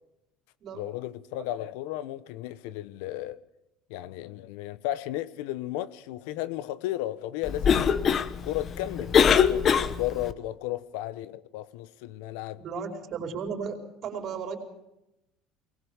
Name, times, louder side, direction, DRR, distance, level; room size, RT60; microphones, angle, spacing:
voice 1, 0.7-3.4 3.9-12.6, left 14 dB, 85° left, 1.1 m, -34 dB
Cough, 7.4-10.3, left 7 dB, 35° left, 1.1 m, -23 dB
voice 2, 12.6-14.6, right 6 dB, 45° right, 5.0 m, -35 dB
23.0 x 20.0 x 7.2 m
cardioid pair, 135°, 0 cm